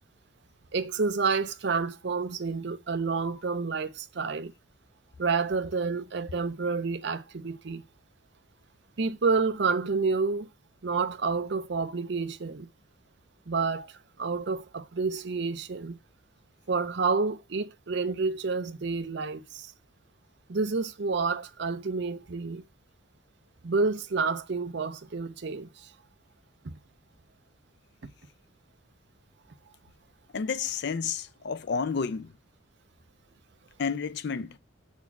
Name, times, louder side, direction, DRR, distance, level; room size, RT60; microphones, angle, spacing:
voice 1, 0.7-4.5 5.2-7.8 9.0-10.5 10.8-12.7 13.5-16.0 16.7-19.7 20.5-22.6 23.6-25.9 26.6-26.7 28.0-28.1, right 4 dB, 55° right, 0.6 m, -29 dB
voice 2, 30.3-32.3 33.8-34.6, left 5 dB, 55° left, 0.4 m, -30 dB
5.9 x 4.3 x 5.8 m
head